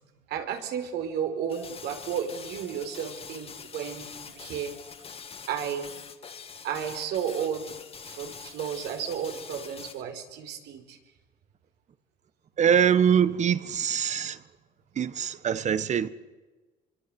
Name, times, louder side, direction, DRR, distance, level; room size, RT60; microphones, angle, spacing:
voice 1, 0.3-4.7 5.5-5.9 6.6-11.0, right 8 dB, 80° right, 4.8 m, -33 dB
sound 1, 1.5-10.0, left 6 dB, 35° left, 2.3 m, -44 dB
voice 2, 12.6-14.4 14.9-16.1, right 8 dB, 45° right, 1.5 m, -23 dB
25.0 x 24.5 x 8.1 m
cardioid pair, 110°, 17 cm